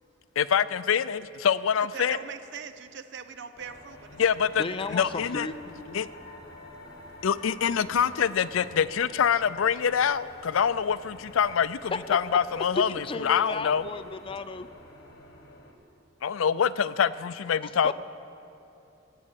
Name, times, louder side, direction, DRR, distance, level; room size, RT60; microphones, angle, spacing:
voice 1, 0.4-2.2 4.2-4.6 4.9-5.5 5.9-6.1 7.2-13.8 16.2-17.9, left 7 dB, 85° left, 16 dB, 0.4 m, -25 dB
voice 2, 1.8-4.2 4.6-4.8 5.1-5.3, right 6 dB, 60° right, 11 dB, 0.6 m, -42 dB
sound 1, 3.6-15.7, left 2 dB, 50° left, 1.7 m, -48 dB
voice 3, 4.6-5.6 11.9-14.7 17.6-17.9, left 3 dB, 25° left, 10 dB, 0.5 m, -34 dB
18.0 x 8.5 x 7.1 m, 2.9 s
head